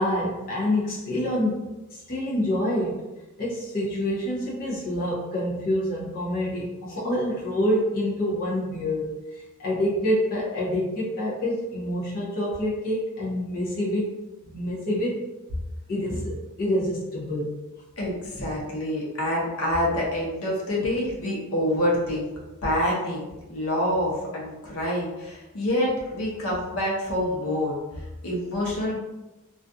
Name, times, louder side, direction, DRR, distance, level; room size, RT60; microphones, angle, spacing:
voice 1, 0.0-3.1 3.4-14.1 14.4-15.3 15.9-17.7, left 1 dB, 40° left, -7 dB, 0.6 m, -27 dB
voice 2, 18.0-22.3 22.6-23.2 23.5-29.0, left 1 dB, 80° left, -4 dB, 0.8 m, -27 dB
2.4 x 2.3 x 2.5 m, 1.1 s
head